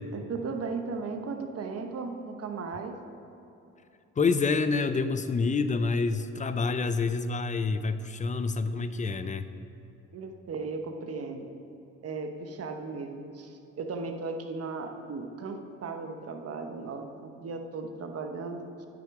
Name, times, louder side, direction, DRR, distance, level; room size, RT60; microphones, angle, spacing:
voice 1, 0.1-3.0 10.1-11.5 12.0-18.7, right 4 dB, 55° right, 5 dB, 1.0 m, -36 dB
voice 2, 4.2-9.5, left 4 dB, 25° left, 11 dB, 0.5 m, -27 dB
9.0 x 6.3 x 4.7 m, 2.9 s
cardioid pair, 90°, 30 cm